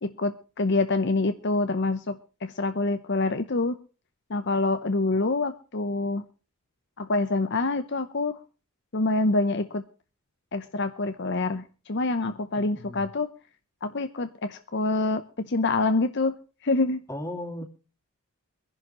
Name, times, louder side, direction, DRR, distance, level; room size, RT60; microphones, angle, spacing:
voice 1, 0.0-3.8 4.3-6.2 7.0-8.4 8.9-9.8 10.5-13.3 13.8-16.3 16.6-17.0, left 2 dB, 50° left, 0.7 m, -26 dB
voice 2, 12.6-13.1 17.1-17.6, left 1 dB, 15° left, 2.3 m, -36 dB
23.5 x 11.0 x 3.0 m
head